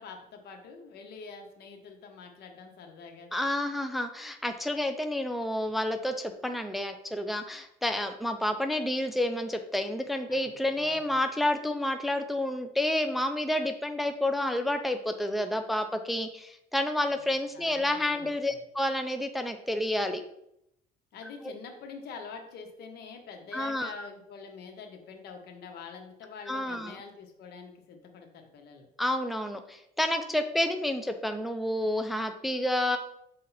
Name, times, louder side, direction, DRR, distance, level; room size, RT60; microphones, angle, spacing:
voice 1, 0.0-3.3 10.3-11.2 17.1-18.6 21.1-28.9, left 5 dB, 70° left, 4 dB, 1.3 m, -46 dB
voice 2, 3.3-20.2 21.4-21.5 23.5-24.1 26.5-27.0 29.0-33.0, left 1 dB, ahead, 6 dB, 0.5 m, -30 dB
6.7 x 3.8 x 4.1 m, 0.78 s
cardioid pair, 110°, 17 cm